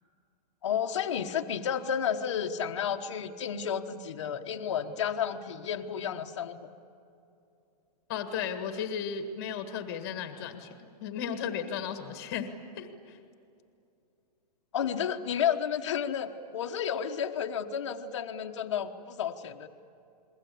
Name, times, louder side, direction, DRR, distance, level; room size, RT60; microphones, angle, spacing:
voice 1, 0.6-6.7 14.7-19.7, left 8 dB, 45° left, 4 dB, 1.2 m, -31 dB
voice 2, 8.1-10.7 11.0-13.2, left 7 dB, 25° left, 7 dB, 1.7 m, -35 dB
29.0 x 21.5 x 8.5 m, 2.6 s
hypercardioid pair, 180°, 21 cm